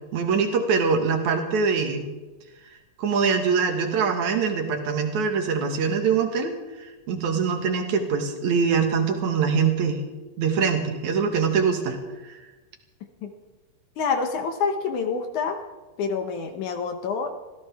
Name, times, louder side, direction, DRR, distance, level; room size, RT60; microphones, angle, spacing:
voice 1, 0.1-2.1 3.0-6.5 6.8-10.0 10.4-12.0 12.3-12.4, right 5 dB, 60° right, 4 dB, 2.9 m, -23 dB
voice 2, 14.0-15.6 16.0-17.3, left 5 dB, 65° left, 5 dB, 2.2 m, -27 dB
26.0 x 16.0 x 3.6 m, 1.2 s
omnidirectional pair, 4.1 m